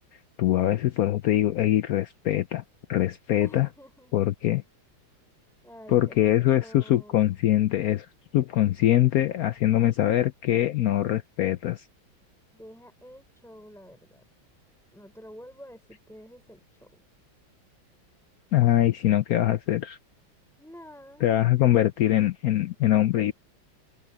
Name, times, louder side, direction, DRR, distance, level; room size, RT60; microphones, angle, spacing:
voice 1, 0.4-2.6 2.9-3.7 4.1-4.6 5.9-8.1 8.3-11.8 18.5-20.0 21.2-23.3, left 13 dB, 90° left, 0.7 m, -23 dB
voice 2, 3.4-4.1 5.6-7.4 12.5-14.2 14.9-17.0 20.6-21.3, equal, ahead, 6.2 m, -49 dB
omnidirectional pair, 2.2 m